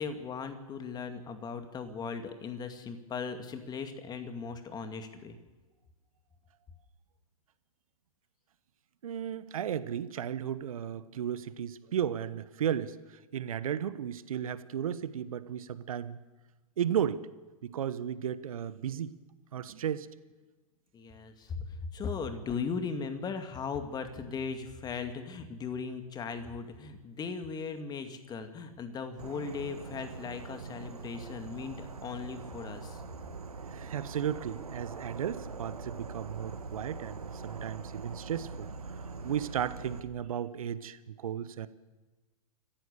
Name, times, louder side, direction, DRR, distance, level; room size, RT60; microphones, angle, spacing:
voice 1, 0.0-5.4 20.9-33.0, left 5 dB, 20° left, 8 dB, 2.3 m, -38 dB
voice 2, 9.0-16.2 16.8-17.2 17.6-19.1 19.5-20.1 33.7-38.7 39.2-41.7, right 9 dB, 70° right, 15 dB, 1.2 m, -34 dB
Insect / Frog, 29.2-40.0, right 4 dB, 90° right, 1.5 m, -43 dB
26.0 x 15.0 x 6.9 m, 1.2 s
hypercardioid pair, 110°, 19 cm